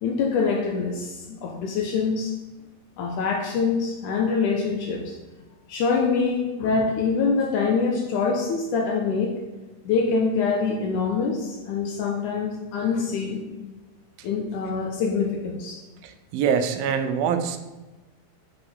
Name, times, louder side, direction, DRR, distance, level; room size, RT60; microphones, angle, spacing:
voice 1, 0.0-2.4 3.0-5.2 5.7-9.4 9.9-13.7 14.2-15.8, left 5 dB, 70° left, 2 dB, 2.2 m, -25 dB
voice 2, 16.0-17.6, right 7 dB, 90° right, 8 dB, 2.6 m, -24 dB
7.9 x 6.9 x 5.5 m, 1.1 s
omnidirectional pair, 4.1 m